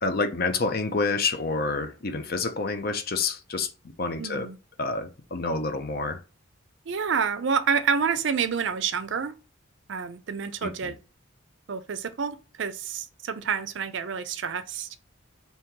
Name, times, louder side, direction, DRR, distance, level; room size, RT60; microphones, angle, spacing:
voice 1, 0.0-3.7 4.0-4.5 4.8-6.2 10.6-10.9, left 3 dB, 45° left, 0.6 m, -28 dB
voice 2, 4.2-4.6 6.9-9.4 9.9-11.0 11.7-14.9, right 6 dB, 60° right, 0.4 m, -28 dB
2.9 x 2.8 x 3.6 m
head